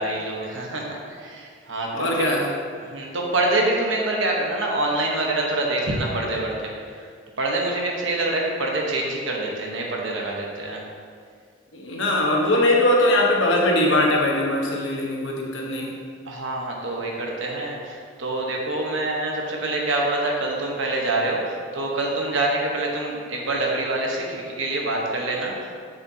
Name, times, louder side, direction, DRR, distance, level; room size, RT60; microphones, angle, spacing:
voice 1, 0.0-2.3 2.8-7.1 7.4-10.8 16.3-25.7, right 2 dB, 70° right, -1 dB, 1.1 m, -26 dB
voice 2, 1.9-2.4 11.7-16.0, left 1 dB, 65° left, -2 dB, 1.2 m, -21 dB
7.4 x 6.8 x 2.8 m, 2.1 s
head